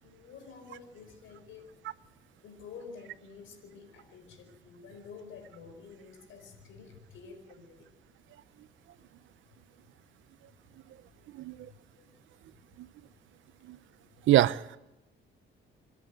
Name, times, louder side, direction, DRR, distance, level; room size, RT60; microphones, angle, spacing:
voice 1, 0.0-2.1 2.4-7.9 11.6-12.1, left 5 dB, 80° left, 5 dB, 4.7 m, -50 dB
voice 2, 14.3-14.8, right 14 dB, 75° right, 17 dB, 0.7 m, -24 dB
27.0 x 11.0 x 9.1 m, 0.95 s
cardioid pair, 90°, 20 cm